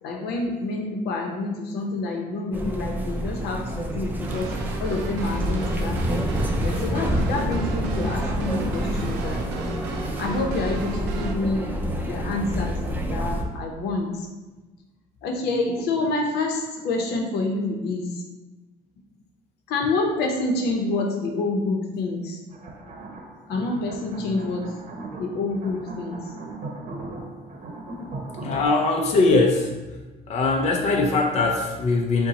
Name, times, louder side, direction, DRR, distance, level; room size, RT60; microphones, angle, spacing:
voice 1, 0.0-4.5 4.8-6.3 6.6-9.5 10.2-11.7 12.0-12.8 13.1-14.3 15.2-18.1 19.7-22.4 23.5-24.7 25.2-26.2 27.9-28.5, left 2 dB, 75° left, 2 dB, 0.8 m, -27 dB
sound 1, 2.5-13.4, equal, 10° right, 0.6 m, -28 dB
sound 2, 4.2-11.3, right 3 dB, 90° right, 0.5 m, -34 dB
sound 3, 22.5-28.6, right 2 dB, 45° right, 0.9 m, -38 dB
voice 2, 28.4-29.7 30.3-32.3, left 3 dB, 40° left, 1 dB, 0.5 m, -21 dB
5.3 x 2.2 x 4.1 m, 1.2 s
cardioid pair, 110°, 17 cm